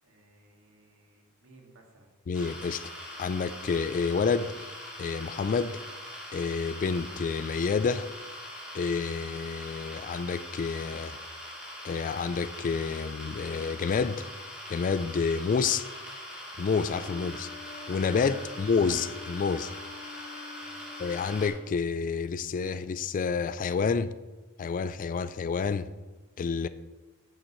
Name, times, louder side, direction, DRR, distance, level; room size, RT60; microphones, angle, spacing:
voice 1, 0.0-2.1 17.1-17.4 18.5-18.6 20.6-21.0, right 2 dB, 65° right, 0 dB, 2.0 m, -59 dB
voice 2, 2.3-2.9 3.2-4.5 5.0-5.8 6.3-8.1 8.7-11.2 11.8-14.2 14.7-15.9 16.6-17.5 17.9-19.7 21.0-24.1 24.6-25.9 26.4-26.7, left 5 dB, 40° left, 14 dB, 0.3 m, -29 dB
sound 1, 2.3-21.5, left 1 dB, 5° right, 3.0 m, -42 dB
Wind instrument woodwind instrument, 16.9-21.6, left 3 dB, 30° right, 2.2 m, -45 dB
11.5 x 8.8 x 3.1 m, 1.2 s
head